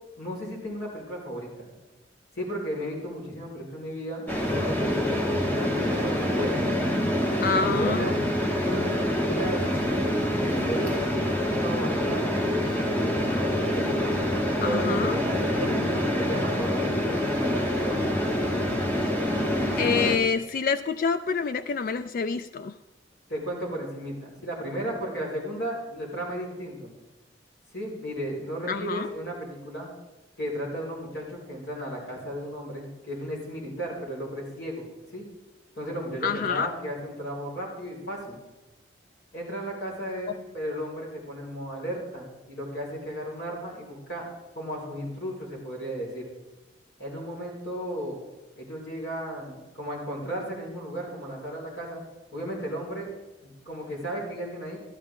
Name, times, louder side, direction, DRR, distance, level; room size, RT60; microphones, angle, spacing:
voice 1, 0.2-1.7 2.3-6.7 7.3-8.1 8.6-9.6 10.4-12.7 13.0-13.9 14.6-18.0 23.3-26.9 27.7-29.9 30.4-34.9 35.1-35.2 35.8-38.4 39.3-44.3 44.5-46.3 47.0-48.2 48.6-52.0 52.3-53.1 53.4-54.8, equal, 60° left, -3 dB, 4.7 m, -35 dB
sound 1, 4.3-20.2, equal, 10° left, 1.0 m, -26 dB
voice 2, 7.4-8.2 14.6-15.2 19.8-22.8 28.7-29.1 36.2-36.7, left 5 dB, 45° left, 12 dB, 0.3 m, -27 dB
13.0 x 12.5 x 3.7 m, 1.1 s
head